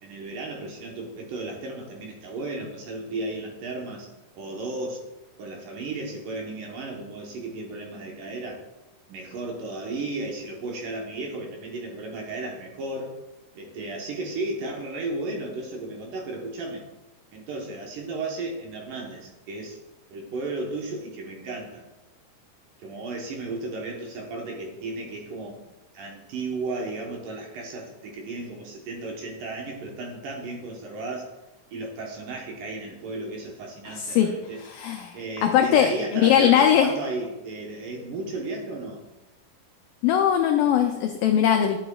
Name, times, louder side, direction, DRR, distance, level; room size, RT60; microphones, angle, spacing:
voice 1, 0.0-4.1 4.4-5.0 5.4-8.6 9.1-13.2 13.6-16.9 17.3-19.8 20.1-21.8 22.8-25.6 25.9-31.3 31.7-34.6 35.1-39.0, right 2 dB, 70° right, 0 dB, 2.4 m, -34 dB
voice 2, 33.9-34.3 34.6-36.9 40.0-41.8, left 9 dB, 85° left, 4 dB, 1.9 m, -21 dB
11.0 x 8.1 x 2.3 m, 1.0 s
omnidirectional pair, 4.4 m